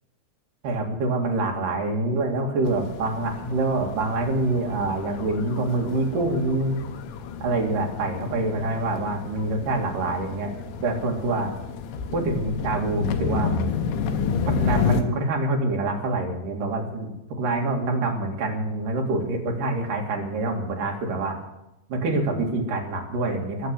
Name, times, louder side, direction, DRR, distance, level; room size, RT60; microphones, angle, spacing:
voice 1, 0.6-6.8 7.4-10.6 10.8-11.5 12.1-13.6 14.5-21.4 21.9-23.7, right 2 dB, 55° right, 1 dB, 3.4 m, -26 dB
sound 1, 2.7-15.0, left 6 dB, 85° left, 3.4 m, -30 dB
21.5 x 7.2 x 6.7 m, 0.90 s
omnidirectional pair, 5.1 m